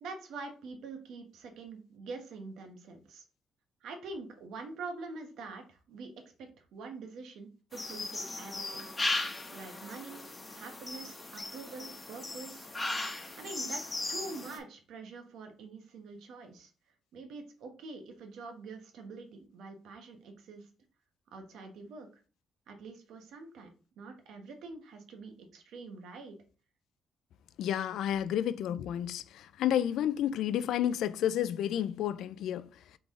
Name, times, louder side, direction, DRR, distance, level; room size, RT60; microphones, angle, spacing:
voice 1, 0.0-3.2 3.8-6.1 6.4-8.9 9.5-10.2 10.5-12.7 13.4-16.7 17.1-20.7 21.3-22.2 22.7-26.4, right 3 dB, 80° right, 1.1 m, -45 dB
sound 1, 7.7-14.6, left 2 dB, 20° left, 1.1 m, -37 dB
voice 2, 27.6-32.7, left 10 dB, 80° left, 0.3 m, -31 dB
3.9 x 3.4 x 3.7 m
cardioid pair, 90°, 0 cm